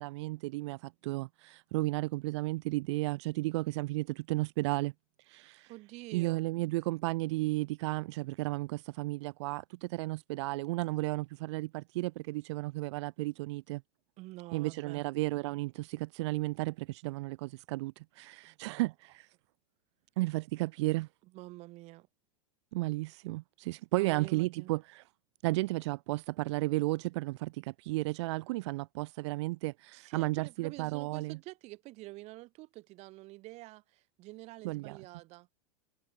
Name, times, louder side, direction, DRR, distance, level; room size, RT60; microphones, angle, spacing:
voice 1, 0.0-4.9 5.2-5.7 6.1-13.8 14.5-19.3 20.2-21.1 22.7-25.0 25.4-31.4 34.6-35.0, right 21 dB, 65° right, 2.3 m, -33 dB
voice 2, 5.7-6.4 14.2-15.1 18.4-18.8 21.3-22.1 24.0-24.7 29.9-35.5, right 20 dB, 45° right, 4.4 m, -47 dB
supercardioid pair, 140°, 16 cm